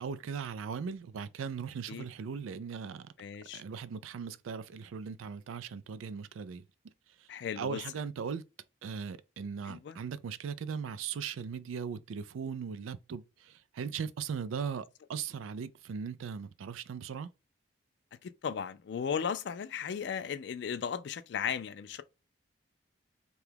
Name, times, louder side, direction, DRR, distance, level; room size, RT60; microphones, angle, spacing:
voice 1, 0.0-3.1 3.5-6.6 7.2-7.3 7.6-8.4 8.8-17.3, right 6 dB, 85° right, 0.4 m, -38 dB
voice 2, 3.2-3.6 7.3-7.8 9.6-10.0 18.2-22.0, left 7 dB, 60° left, 0.3 m, -36 dB
2.8 x 2.3 x 3.3 m
head